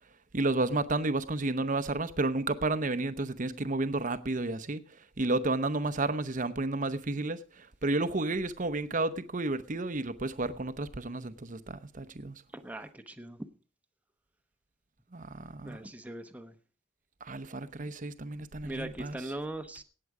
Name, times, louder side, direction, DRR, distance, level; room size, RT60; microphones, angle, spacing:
voice 1, 0.3-4.8 5.2-12.4 15.1-15.8 17.2-19.2, right 2 dB, 45° right, 0.8 m, -31 dB
voice 2, 12.5-13.4 15.6-16.5 18.6-19.8, right 1 dB, 10° right, 0.9 m, -40 dB
18.0 x 7.7 x 4.8 m
head